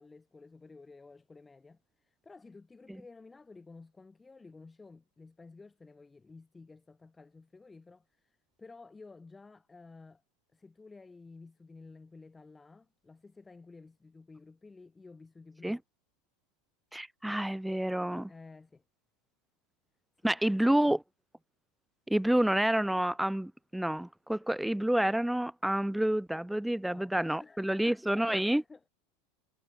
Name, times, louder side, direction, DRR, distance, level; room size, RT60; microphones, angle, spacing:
voice 1, 0.0-10.2 10.5-15.8 18.3-18.8 20.2-21.0 26.9-27.1 27.4-28.9, left 3 dB, 15° left, 2.5 m, -53 dB
voice 2, 16.9-18.3 20.2-21.0 22.1-28.6, right 1 dB, 5° right, 0.5 m, -29 dB
hypercardioid pair, 100°, 0 cm